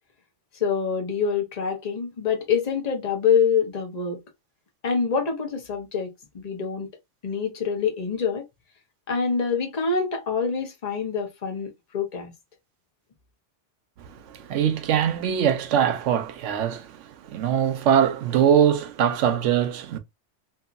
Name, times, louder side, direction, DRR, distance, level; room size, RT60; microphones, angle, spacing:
voice 1, 0.6-4.2 4.8-6.9 7.2-8.4 9.1-12.3, left 6 dB, 35° left, 0.9 m, -25 dB
voice 2, 14.0-20.0, right 9 dB, 80° right, 0.9 m, -22 dB
2.8 x 2.7 x 2.4 m
omnidirectional pair, 1.3 m